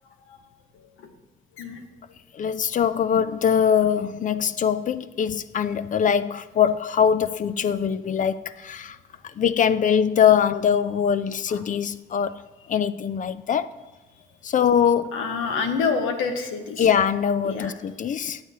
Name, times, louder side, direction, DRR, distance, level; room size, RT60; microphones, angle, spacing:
voice 1, 0.7-1.1 1.6-1.8 11.5-11.6 15.1-16.9 17.4-17.7, left 5 dB, 85° left, 1.0 m, -27 dB
voice 2, 2.3-9.0 9.2-12.4 12.7-13.7 14.4-15.2 16.8-18.4, left 8 dB, 40° left, 0.4 m, -22 dB
9.5 x 8.6 x 2.8 m
cardioid pair, 90°, 20 cm